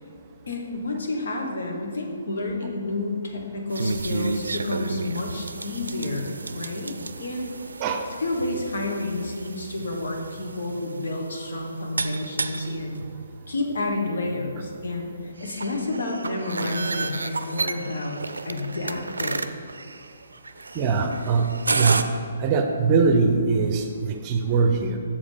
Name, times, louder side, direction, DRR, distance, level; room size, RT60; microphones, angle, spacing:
voice 1, 0.5-6.9 7.2-7.5 8.2-13.0 13.5-18.2 18.4-19.6, left 2 dB, 70° left, 1 dB, 1.4 m, -30 dB
sound 1, 3.7-22.0, right 3 dB, 80° right, 0.4 m, -32 dB
voice 2, 20.7-22.0 22.4-25.0, right 4 dB, 30° right, 5 dB, 0.7 m, -22 dB
7.1 x 5.3 x 5.1 m, 2.3 s
figure-of-eight pair, 140°, 0 cm